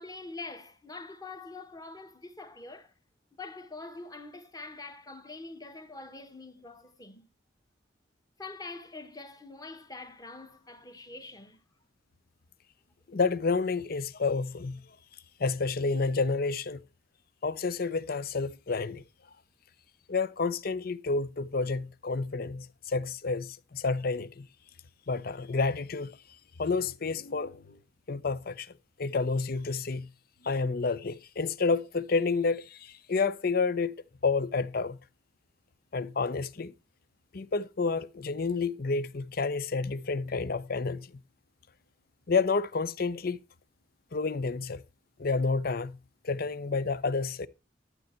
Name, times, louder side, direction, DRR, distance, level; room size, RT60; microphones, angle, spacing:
voice 1, 0.0-2.9 3.4-7.3 8.4-11.6, left 3 dB, 20° left, 1.3 m, -44 dB
voice 2, 13.1-14.8 15.4-16.8 17.4-19.0 20.1-24.5 25.1-26.1 26.6-27.8 28.1-28.7 29.0-30.1 30.4-35.0 35.9-36.7 37.3-41.1 42.3-43.4 44.1-44.8 45.2-46.0 46.2-47.5, left 4 dB, 50° left, 0.6 m, -30 dB
12.0 x 7.8 x 4.4 m
head